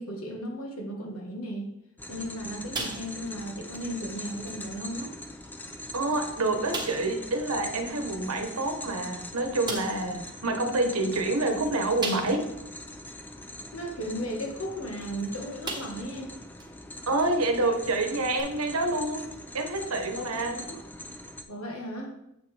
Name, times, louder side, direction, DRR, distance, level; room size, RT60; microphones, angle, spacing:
voice 1, 0.0-1.7 2.1-5.1 13.7-16.3 20.1-20.3 20.5-20.8 21.5-22.1, equal, 70° left, 1 dB, 1.5 m, -35 dB
sound 1, 2.0-21.4, left 1 dB, 10° left, 0.5 m, -42 dB
sound 2, 2.7-3.4 3.7-3.9 4.5-4.6 5.4-5.5 5.9-6.0 6.7-7.1 8.8-8.9 9.7-10.1 12.0-12.6 13.1-13.2 15.0-15.2 15.6-16.1 16.6-16.7 18.4-18.5, right 3 dB, 20° right, 1.2 m, -35 dB
voice 2, 5.9-12.5 17.1-20.6, right 2 dB, 80° right, 5 dB, 1.1 m, -27 dB
7.7 x 6.2 x 3.4 m, 0.82 s
head